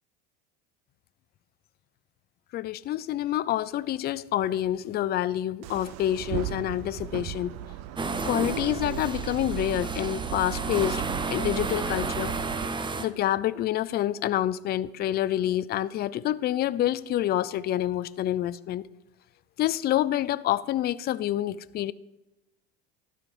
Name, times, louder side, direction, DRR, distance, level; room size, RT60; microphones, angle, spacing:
voice 1, 2.5-7.5 8.2-11.0 11.3-12.3 13.0-18.8 19.6-21.9, left 12 dB, 35° left, 0.4 m, -27 dB
sound 1, 5.6-12.7, right 13 dB, 60° right, 0.5 m, -36 dB
sound 2, 8.0-13.0, right 3 dB, 15° right, 0.6 m, -32 dB
12.0 x 5.0 x 5.2 m
supercardioid pair, 90°, 30 cm